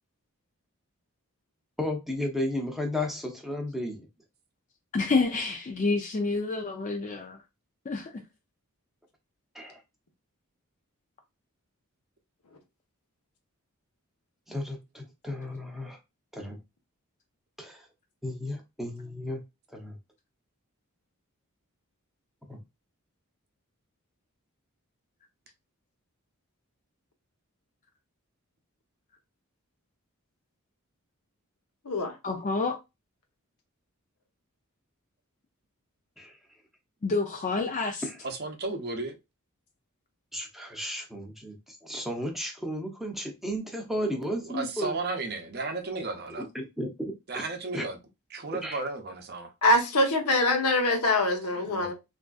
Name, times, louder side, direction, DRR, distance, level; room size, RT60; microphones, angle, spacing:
voice 1, 1.8-4.1 9.5-9.8 14.5-16.0 16.3-16.6 17.6-17.8 18.2-19.4 19.7-20.0 22.5-22.6 36.2-36.4 38.0-38.2 40.3-45.0 46.4-47.4 47.7-47.8 48.6-48.8, left 1 dB, ahead, 0.7 m, -34 dB
voice 2, 4.9-7.4 7.9-8.1 32.2-32.8 37.0-38.0, left 3 dB, 35° left, 0.4 m, -28 dB
voice 3, 38.2-39.2 44.0-46.5 47.3-48.0 48.3-49.5 51.6-51.9, right 3 dB, 45° right, 0.7 m, -34 dB
voice 4, 49.6-51.9, left 1 dB, 85° left, 1.0 m, -24 dB
3.5 x 2.6 x 2.3 m
head